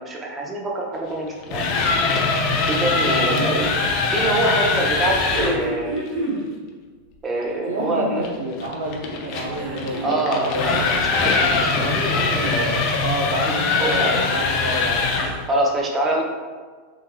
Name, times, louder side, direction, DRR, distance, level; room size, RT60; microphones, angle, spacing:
voice 1, 0.0-1.8 2.7-3.7 4.1-6.0 7.2-8.3 10.0-12.9 13.4-14.1 15.5-16.2, right 2 dB, 25° right, -1 dB, 0.6 m, -25 dB
sound 1, 1.3-5.6 8.2-15.4, left 4 dB, 55° left, 0.4 m, -22 dB
voice 2, 3.0-3.8 7.7-10.8 13.0-15.1, right 1 dB, 90° right, 0 dB, 0.5 m, -29 dB
sound 2, 3.2-3.5 5.0-6.4 7.5-8.2 9.2-10.2 11.7-12.6 13.7-13.8, right 1 dB, 55° right, 1.3 m, -30 dB
3.7 x 2.7 x 2.2 m, 1.5 s
hypercardioid pair, 100°, 0 cm